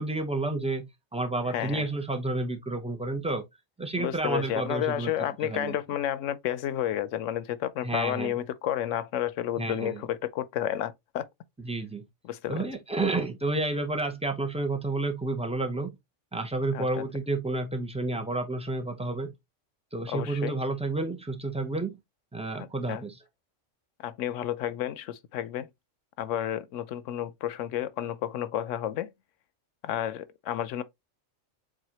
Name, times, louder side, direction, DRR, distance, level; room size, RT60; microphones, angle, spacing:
voice 1, 0.0-3.5 3.8-5.1 5.4-5.8 7.8-8.3 9.6-10.0 11.6-12.1 12.5-16.0 16.3-19.3 19.9-22.0 22.3-23.1, right 2 dB, 10° right, 0.4 m, -30 dB
voice 2, 1.5-1.8 4.0-11.3 12.2-12.7 16.7-17.0 20.1-20.6 22.6-23.0 24.0-25.7 26.2-29.1 29.8-30.8, left 11 dB, 80° left, 0.9 m, -31 dB
7.4 x 2.5 x 2.8 m
omnidirectional pair, 1.3 m